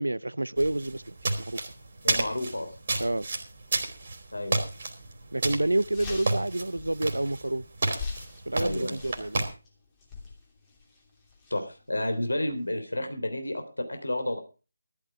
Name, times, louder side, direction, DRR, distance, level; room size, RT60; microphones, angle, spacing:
voice 1, 0.0-1.6 3.0-3.3 5.3-7.6 8.5-9.5, right 1 dB, 70° right, 0.6 m, -29 dB
sound 1, 0.6-9.5, right 2 dB, 40° right, 2.9 m, -31 dB
voice 2, 2.0-2.7 4.3-4.5 8.6-9.0 11.5-14.4, left 1 dB, 70° left, 3.4 m, -31 dB
sound 2, 5.8-12.7, left 4 dB, 15° left, 3.0 m, -44 dB
13.5 x 12.0 x 4.7 m
figure-of-eight pair, 155°, 0 cm